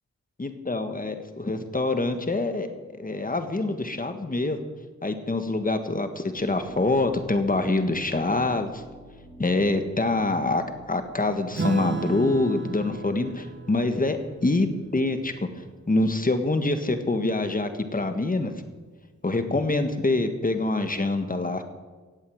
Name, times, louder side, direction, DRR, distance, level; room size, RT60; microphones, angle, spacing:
voice 1, 0.4-4.6 5.0-8.8 9.4-15.3 15.9-18.5 19.2-21.6, left 2 dB, 30° left, 7 dB, 1.6 m, -25 dB
sound 1, 6.4-18.7, right 1 dB, 10° right, 2.9 m, -51 dB
Acoustic guitar / Strum, 11.5-16.4, right 3 dB, 40° right, 1.0 m, -35 dB
17.0 x 8.3 x 7.9 m, 1.3 s
wide cardioid pair, 80°, 29 cm